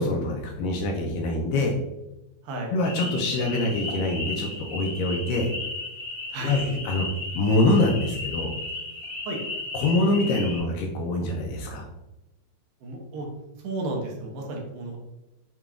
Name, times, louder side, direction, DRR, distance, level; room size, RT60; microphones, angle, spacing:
voice 1, 0.0-1.8 2.7-5.5 6.4-6.6 6.9-7.1 7.4-8.5 9.7-11.9, left 2 dB, 80° left, 1 dB, 2.0 m, -24 dB
voice 2, 2.4-2.8 6.3-6.8 9.3-9.4 12.8-13.3 13.6-15.0, right 2 dB, 80° right, 0 dB, 2.4 m, -33 dB
sound 1, 2.8-10.6, left 2 dB, 40° right, 1.4 m, -35 dB
6.8 x 3.0 x 2.4 m, 0.95 s
omnidirectional pair, 4.1 m